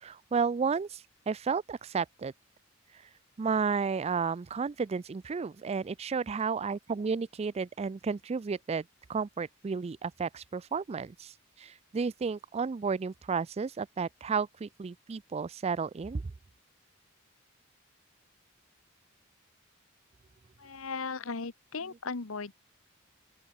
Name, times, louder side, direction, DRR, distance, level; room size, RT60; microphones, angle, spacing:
voice 1, 0.0-2.3 3.4-8.8 9.1-16.3, right 5 dB, 30° right, 0.4 m, -32 dB
voice 2, 20.6-22.5, left 4 dB, 75° left, 1.1 m, -37 dB
open air
head